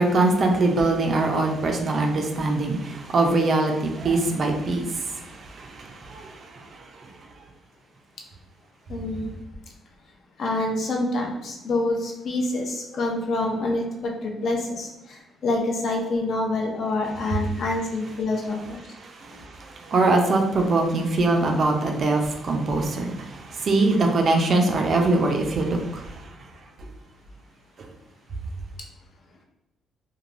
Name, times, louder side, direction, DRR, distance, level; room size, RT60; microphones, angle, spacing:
voice 1, 0.0-5.3 5.6-6.3 19.2-26.1, right 2 dB, 35° right, 3 dB, 0.4 m, -22 dB
voice 2, 8.9-9.3 10.4-13.8 14.2-14.9 15.4-18.8, left 2 dB, 45° left, 1 dB, 0.5 m, -26 dB
3.0 x 2.2 x 2.5 m, 0.93 s
cardioid pair, 175°, 0 cm